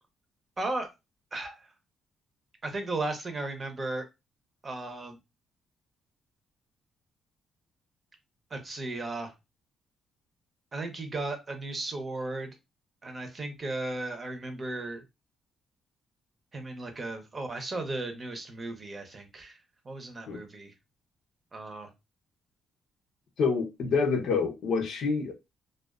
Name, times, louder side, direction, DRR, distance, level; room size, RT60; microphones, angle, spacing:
voice 1, 0.6-0.9 1.3-1.7 2.6-4.0 4.6-5.2 8.5-9.3 10.7-12.6 13.0-15.0 16.5-19.6 19.8-20.7 21.5-21.9, right 2 dB, 35° right, 0.7 m, -35 dB
voice 2, 23.4-25.3, left 5 dB, 70° left, 0.7 m, -27 dB
2.3 x 2.3 x 2.3 m
cardioid pair, 90°, 0 cm